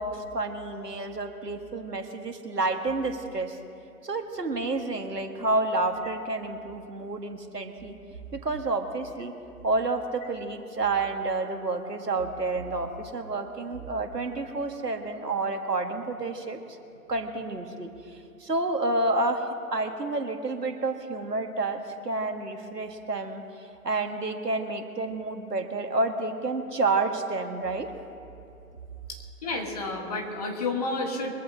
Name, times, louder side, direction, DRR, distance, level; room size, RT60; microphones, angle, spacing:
voice 1, 0.0-3.6 4.0-7.9 8.3-9.3 9.6-16.6 17.1-23.4 23.8-27.9, right 2 dB, 90° right, 5 dB, 1.7 m, -29 dB
voice 2, 29.1-31.3, left 3 dB, 25° left, 2 dB, 1.5 m, -31 dB
23.0 x 14.5 x 2.8 m, 2.7 s
figure-of-eight pair, 150°, 47 cm